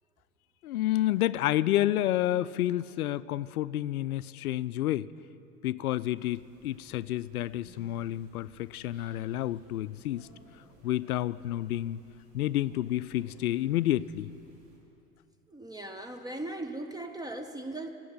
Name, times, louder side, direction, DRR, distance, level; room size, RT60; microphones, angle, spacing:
voice 1, 0.6-5.1 5.6-10.3 10.8-12.0 12.3-14.3, left 14 dB, 75° left, 17 dB, 0.5 m, -29 dB
sound 1, 6.2-14.8, right 1 dB, 50° right, 4.7 m, -59 dB
voice 2, 15.5-17.9, right 2 dB, 10° right, 6 dB, 0.7 m, -38 dB
16.0 x 7.7 x 9.5 m, 2.7 s
figure-of-eight pair, 85°, 45 cm